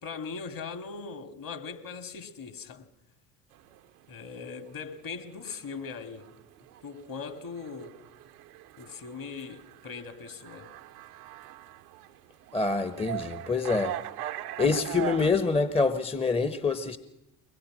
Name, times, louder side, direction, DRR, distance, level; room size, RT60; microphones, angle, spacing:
voice 1, 0.0-2.9 4.1-6.3 6.8-8.0 8.8-10.7, left 5 dB, 45° left, 2.3 m, -40 dB
sound 1, 3.5-15.3, right 12 dB, 75° right, 0.9 m, -41 dB
voice 2, 12.5-13.9 14.6-17.0, left 4 dB, 15° left, 1.0 m, -26 dB
23.5 x 18.5 x 6.1 m
hypercardioid pair, 60°, 47 cm